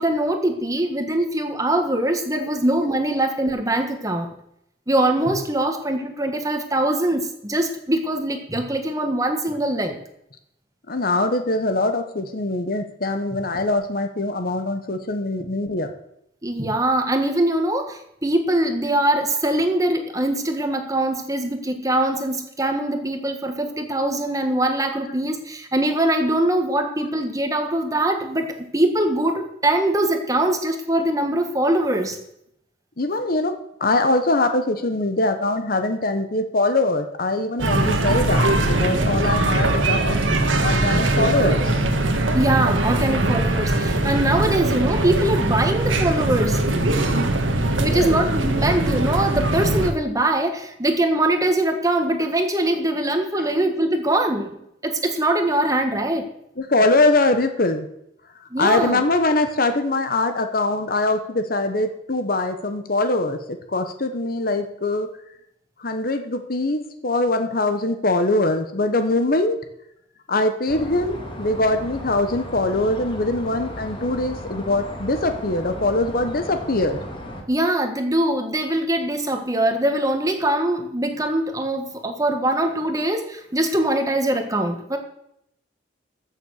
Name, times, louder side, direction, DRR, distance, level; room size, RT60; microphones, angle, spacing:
voice 1, 0.0-4.3 4.9-10.0 16.4-32.2 42.3-46.6 47.8-54.6 54.8-56.3 58.5-59.0 77.5-85.0, right 1 dB, 20° right, 5 dB, 1.5 m, -22 dB
voice 2, 10.9-15.9 33.0-40.2 40.6-41.8 47.8-48.2 53.3-53.4 56.6-57.9 58.4-65.1 65.8-69.6 70.3-77.0, left 2 dB, 50° left, 8 dB, 1.2 m, -22 dB
sound 1, 37.6-49.9, right 2 dB, 90° right, 1.7 m, -21 dB
sound 2, 70.7-77.4, equal, 25° left, 2.0 m, -35 dB
14.5 x 7.0 x 6.6 m, 0.77 s
head